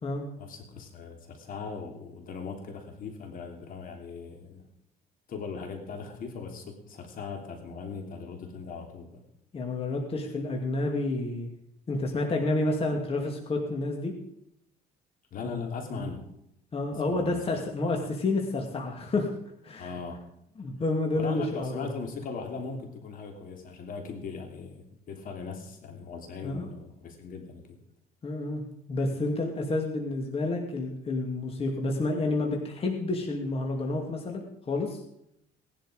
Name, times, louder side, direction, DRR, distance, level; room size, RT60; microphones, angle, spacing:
voice 1, 0.4-4.6 5.3-9.1 15.3-16.3 17.0-17.6 19.8-20.2 21.1-27.8, left 5 dB, 55° left, 3 dB, 3.2 m, -39 dB
voice 2, 9.5-11.5 11.9-14.1 15.4-15.6 16.0-16.1 16.7-19.3 19.6-19.9 20.6-21.9 26.4-26.7 28.2-28.6 28.9-35.0, left 2 dB, 35° left, 1 dB, 2.6 m, -29 dB
19.0 x 11.0 x 5.1 m, 0.77 s
cardioid pair, 110°, 17 cm